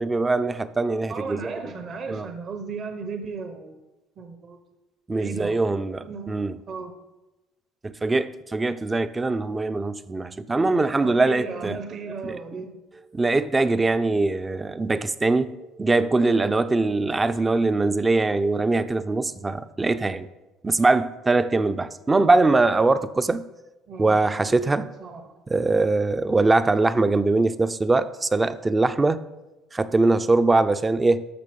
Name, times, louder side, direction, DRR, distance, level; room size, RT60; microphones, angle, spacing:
voice 1, 0.0-1.6 2.1-2.3 5.1-6.5 7.8-11.8 12.2-12.3 13.1-20.3 20.6-23.5 24.0-24.9 25.5-29.2 29.7-31.2, right 3 dB, 20° right, 0.6 m, -22 dB
voice 2, 1.1-3.8 4.2-4.6 5.1-5.6 6.0-7.0 11.0-12.8 23.9-24.2 25.0-25.4, right 5 dB, 45° right, 1.1 m, -35 dB
13.5 x 5.9 x 5.4 m
supercardioid pair, 100°, 0 cm